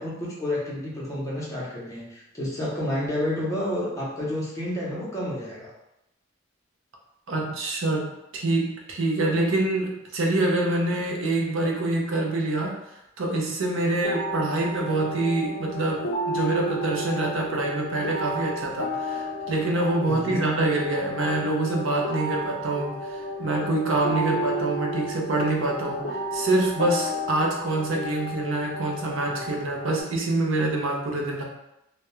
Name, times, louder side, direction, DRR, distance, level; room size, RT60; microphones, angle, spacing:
voice 1, 0.0-5.7 20.1-20.4, left 1 dB, 15° left, -6 dB, 0.7 m, -30 dB
voice 2, 7.3-12.8 13.2-31.4, right 2 dB, 75° right, 0 dB, 0.6 m, -26 dB
sound 1, 14.0-30.0, equal, 55° left, 0.4 m, -32 dB
2.3 x 2.1 x 2.9 m, 0.87 s
head